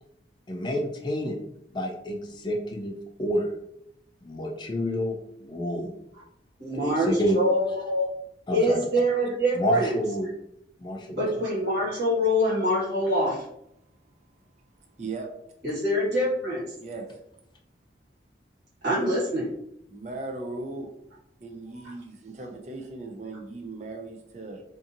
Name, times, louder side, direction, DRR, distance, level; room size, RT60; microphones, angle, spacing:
voice 1, 0.5-1.4 1.7-2.9 3.2-3.5 4.2-5.2 5.4-5.9 6.7-7.4 8.5-8.8 9.5-10.3 10.8-11.2, equal, 25° left, 1 dB, 0.3 m, -28 dB
voice 2, 6.6-8.1 8.5-10.0 11.1-13.4 15.6-16.6 18.8-19.5, equal, 75° right, -7 dB, 1.2 m, -25 dB
voice 3, 15.0-15.3 16.8-17.1 19.9-20.9 21.4-24.6, right 3 dB, 40° right, 3 dB, 0.4 m, -37 dB
2.7 x 2.5 x 2.5 m, 0.76 s
head